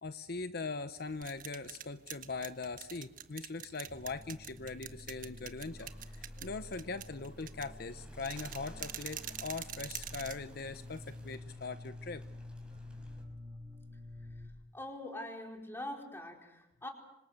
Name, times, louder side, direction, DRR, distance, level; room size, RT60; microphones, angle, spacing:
voice 1, 0.0-12.2, left 4 dB, 60° left, 10 dB, 0.9 m, -41 dB
sound 1, 1.0-11.4, right 10 dB, 50° right, 1.3 m, -46 dB
sound 2, 3.9-14.5, left 1 dB, 30° right, 2.5 m, -49 dB
Bird, 5.6-13.2, right 1 dB, 5° right, 5.5 m, -61 dB
voice 2, 14.7-16.9, left 1 dB, 15° left, 2 dB, 4.6 m, -43 dB
26.5 x 26.5 x 6.6 m, 0.90 s
head